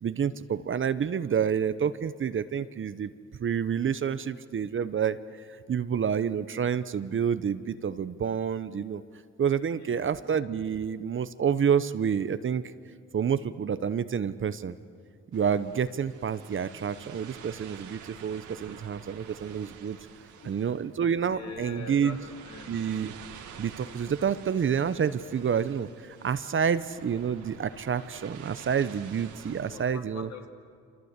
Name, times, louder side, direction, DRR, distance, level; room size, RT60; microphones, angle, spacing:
voice 1, 0.0-3.1 3.4-9.0 9.4-12.6 13.1-14.8 15.3-20.0 20.4-22.2 22.7-23.1 23.6-30.3, right 7 dB, 40° right, 13 dB, 0.9 m, -28 dB
sound 1, 15.3-29.9, right 7 dB, 80° right, 2.2 m, -48 dB
voice 2, 21.2-22.8 29.7-30.5, left 4 dB, 60° left, 4 dB, 2.9 m, -44 dB
28.0 x 26.0 x 8.2 m, 2.3 s
cardioid pair, 90°, 30 cm